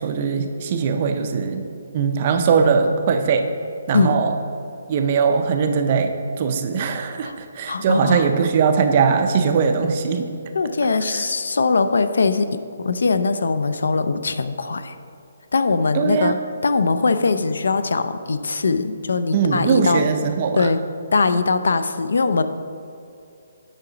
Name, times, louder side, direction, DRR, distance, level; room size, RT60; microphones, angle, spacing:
voice 1, 0.0-1.6 1.9-3.5 3.9-4.3 4.9-10.3 11.1-11.2 15.9-16.4 19.3-20.7, right 5 dB, 25° right, 6 dB, 0.4 m, -20 dB
voice 2, 7.7-8.3 10.5-15.0 15.5-20.1 20.6-20.8 21.1-22.4, left 4 dB, 70° left, 11 dB, 0.4 m, -21 dB
8.9 x 5.9 x 3.8 m, 2.7 s
hypercardioid pair, 180°, 0 cm